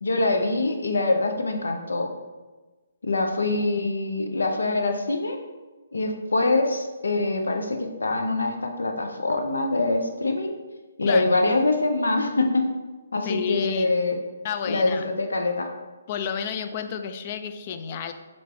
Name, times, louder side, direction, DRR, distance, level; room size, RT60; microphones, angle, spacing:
voice 1, 0.0-2.1 3.0-5.4 5.9-10.6 11.0-12.7 13.1-14.2 14.7-15.7, left 2 dB, 85° left, 4 dB, 0.6 m, -24 dB
voice 2, 13.2-13.9 14.4-15.1 16.1-18.1, left 7 dB, 40° left, 9 dB, 0.3 m, -30 dB
3.9 x 3.3 x 3.3 m, 1.2 s
hypercardioid pair, 145°, 0 cm